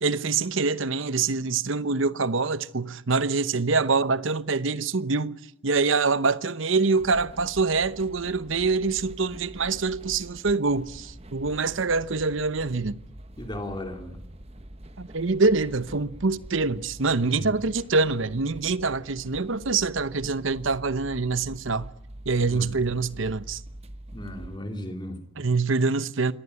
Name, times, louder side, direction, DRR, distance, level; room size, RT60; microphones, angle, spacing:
voice 1, 0.0-5.4 5.6-13.0 15.0-21.9 22.3-23.6 25.4-26.3, right 4 dB, 65° right, 0.9 m, -25 dB
sound 1, 7.0-24.6, right 1 dB, 30° right, 1.2 m, -45 dB
voice 2, 13.4-14.2 17.3-17.5 22.4-22.7 24.1-25.2, left 1 dB, 20° left, 2.9 m, -35 dB
25.0 x 18.0 x 9.8 m
head